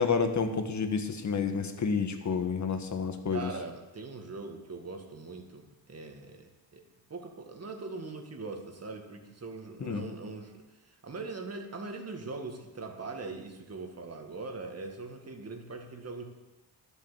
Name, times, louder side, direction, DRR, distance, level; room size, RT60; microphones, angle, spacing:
voice 1, 0.0-3.5 9.8-10.0, left 5 dB, 40° left, 7 dB, 1.6 m, -29 dB
voice 2, 3.3-6.8 7.1-16.2, right 3 dB, 35° right, 4 dB, 2.0 m, -41 dB
12.0 x 8.4 x 7.5 m, 1.1 s
cardioid pair, 95°, 45 cm